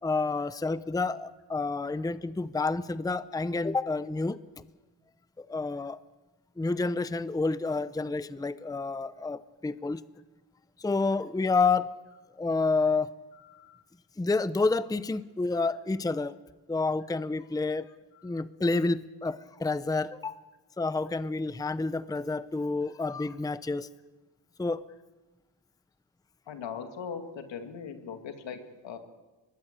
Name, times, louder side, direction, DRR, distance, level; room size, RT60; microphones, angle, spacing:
voice 1, 0.0-4.6 5.4-6.0 6.6-10.0 10.8-11.9 12.4-13.1 14.2-16.4 16.7-17.9 18.2-20.4 20.8-23.9 24.6-24.9, left 3 dB, 10° left, 15 dB, 0.7 m, -29 dB
voice 2, 13.4-13.8 18.1-18.4 26.5-29.0, left 6 dB, 80° left, 6 dB, 2.4 m, -40 dB
24.0 x 20.0 x 6.8 m, 1.2 s
cardioid pair, 65°, 44 cm